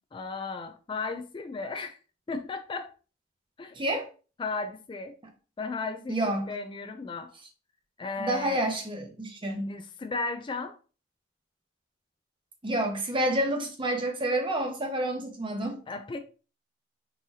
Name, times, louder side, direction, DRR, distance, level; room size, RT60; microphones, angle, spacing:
voice 1, 0.1-2.0 2.3-2.9 3.6-3.7 4.4-5.2 5.6-7.3 8.0-8.6 9.7-10.8 15.9-16.2, left 4 dB, 25° left, 0.3 m, -35 dB
voice 2, 3.7-4.1 6.1-6.5 8.2-9.8 12.6-15.8, right 1 dB, 25° right, 0.8 m, -29 dB
3.8 x 3.2 x 2.7 m
head